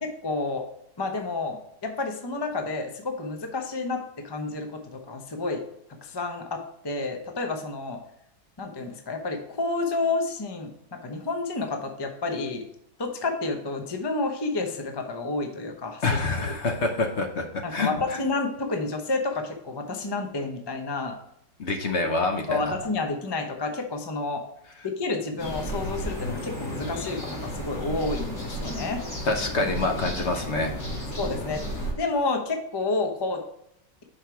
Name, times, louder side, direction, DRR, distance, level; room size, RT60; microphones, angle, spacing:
voice 1, 0.0-0.6 1.0-5.6 6.0-8.0 8.6-12.6 13.0-16.8 17.6-21.2 22.5-24.4 24.8-29.2 31.2-31.6 32.0-33.4, left 3 dB, 25° left, 4 dB, 0.5 m, -30 dB
voice 2, 16.0-17.5 17.7-17.9 21.6-22.7 29.2-30.8, left 3 dB, 50° left, 3 dB, 1.0 m, -26 dB
sound 1, 25.4-31.9, equal, 80° left, 3.2 m, -33 dB
6.4 x 5.0 x 4.7 m, 0.78 s
omnidirectional pair, 1.9 m